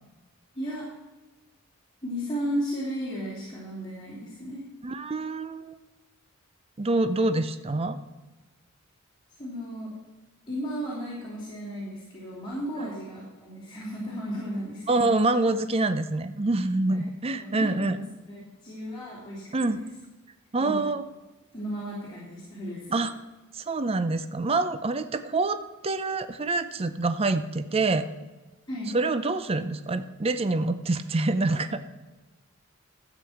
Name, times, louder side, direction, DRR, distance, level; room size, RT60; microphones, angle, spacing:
voice 1, 0.5-0.9 2.0-4.6 9.3-9.9 10.5-15.1 16.9-17.1 17.4-19.9 20.6-20.8 21.5-23.0 28.7-29.0, equal, 20° left, -8 dB, 3.2 m, -34 dB
voice 2, 4.8-5.7 6.8-8.0 12.8-12.9 14.9-18.0 19.5-19.8 20.5-21.0 22.9-23.1 23.5-28.1 28.9-32.0, right 2 dB, 30° right, 11 dB, 0.5 m, -26 dB
12.5 x 8.1 x 5.8 m, 1.2 s
head